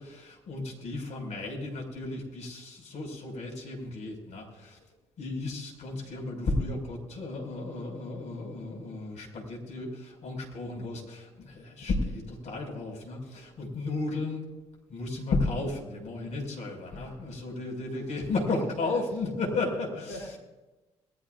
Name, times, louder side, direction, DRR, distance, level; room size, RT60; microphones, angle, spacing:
voice 1, 0.0-4.9 5.2-14.5 14.9-20.2, left 3 dB, 60° left, 0 dB, 5.9 m, -34 dB
voice 2, 16.9-17.4 17.9-19.0 19.5-20.4, equal, 80° left, -4 dB, 3.7 m, -44 dB
22.5 x 14.0 x 2.6 m, 1.1 s
hypercardioid pair, 50°, 14 cm